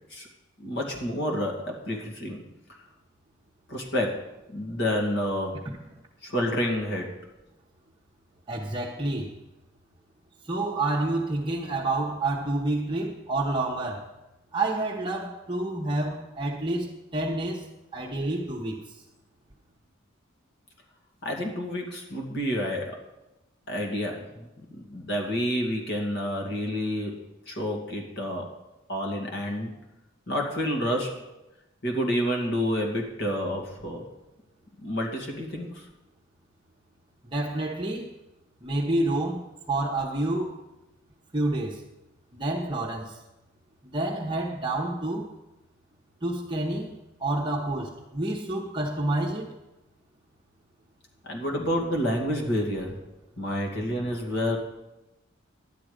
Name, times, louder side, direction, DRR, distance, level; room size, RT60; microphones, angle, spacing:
voice 1, 0.6-2.4 3.7-4.2 4.5-5.6 6.2-7.1 21.2-23.0 23.7-27.2 27.5-28.5 28.9-29.8 30.3-31.1 31.8-34.0 34.8-35.8 51.2-53.0 53.4-54.6, equal, 60° left, 2.3 m, -29 dB
voice 2, 8.5-9.4 10.4-14.1 14.5-18.8 37.3-38.1 38.6-40.6 41.3-41.9 42.3-43.2 43.9-45.3 46.2-49.5, right 2 dB, 25° right, 1.0 m, -29 dB
12.0 x 9.6 x 5.1 m
head